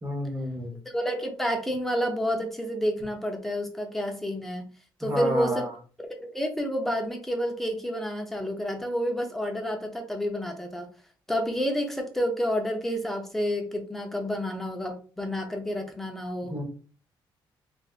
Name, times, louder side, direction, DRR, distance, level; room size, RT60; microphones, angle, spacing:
voice 1, 0.0-0.7 5.0-5.7 16.4-16.6, equal, 20° right, 1 dB, 1.0 m, -30 dB
voice 2, 0.9-4.7 5.0-5.7 6.0-10.9 11.3-16.5, equal, 5° left, 2 dB, 0.6 m, -29 dB
3.3 x 2.6 x 2.4 m, 0.40 s
cardioid pair, 135°, 9 cm